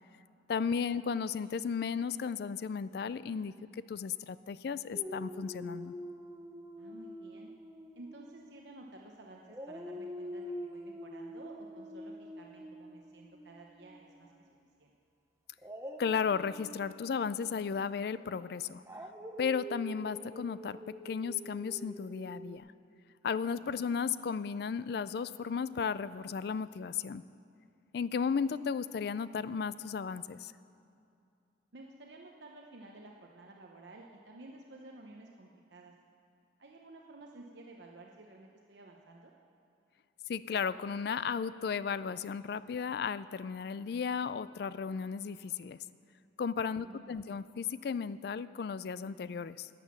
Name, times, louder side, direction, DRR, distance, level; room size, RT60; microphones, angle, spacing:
voice 1, 0.5-5.9 16.0-18.8 19.4-22.7 23.2-27.2 27.9-30.5 40.3-45.8 46.4-49.7, left 6 dB, 55° left, 16 dB, 0.3 m, -34 dB
Dog, 4.9-9.1 9.5-14.5 15.6-22.6, equal, 15° right, 0.7 m, -46 dB
voice 2, 6.8-7.5 7.9-14.3 14.8-14.9 23.6-23.9 31.7-35.9 36.6-39.3 46.7-47.2, right 2 dB, 65° right, 0 dB, 0.9 m, -53 dB
12.0 x 9.3 x 7.3 m, 2.5 s
head